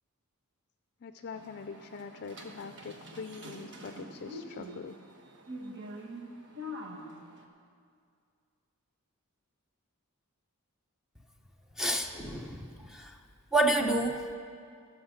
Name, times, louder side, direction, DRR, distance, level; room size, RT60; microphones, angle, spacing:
voice 1, 1.0-5.0, left 5 dB, 50° left, 8 dB, 0.4 m, -43 dB
sound 1, 1.3-7.4, equal, 55° right, 1.3 m, -45 dB
voice 2, 11.8-13.2 13.5-14.3, right 1 dB, ahead, 3 dB, 0.7 m, -29 dB
19.0 x 6.7 x 5.8 m, 2.3 s
head